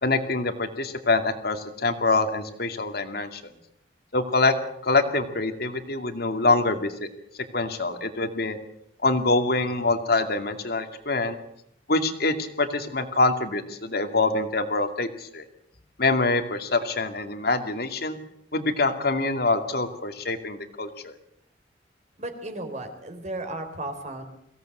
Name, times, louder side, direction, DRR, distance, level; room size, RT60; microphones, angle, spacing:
voice 1, 0.0-3.4 4.1-4.5 4.8-7.1 7.5-8.6 9.0-11.4 11.9-15.4 16.0-18.2 18.5-21.1, left 3 dB, 60° left, 8 dB, 2.4 m, -25 dB
voice 2, 22.2-24.2, right 2 dB, 40° right, 6 dB, 3.7 m, -34 dB
23.5 x 17.0 x 8.0 m, 0.74 s
head